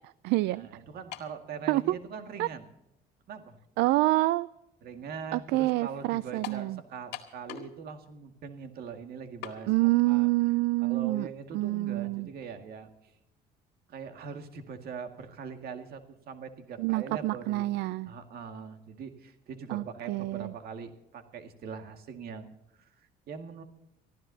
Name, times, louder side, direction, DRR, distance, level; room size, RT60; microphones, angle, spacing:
voice 1, 0.0-0.7 1.7-2.0 2.4-2.5 3.8-4.5 5.3-6.8 9.7-11.3 11.5-12.3 16.8-18.1 19.7-20.5, right 19 dB, 85° right, 18 dB, 0.4 m, -27 dB
voice 2, 0.6-2.6 3.3-3.6 4.8-10.3 10.8-13.1 13.9-17.7 18.1-23.6, right 6 dB, 65° right, 6 dB, 2.0 m, -42 dB
sound 1, 1.1-1.4 2.3-2.4 6.4-6.7 7.1-7.8 8.1-8.2 9.4-9.6, left 11 dB, 85° left, 2.0 m, -41 dB
24.5 x 15.0 x 2.8 m, 0.86 s
cardioid pair, 110°, 17 cm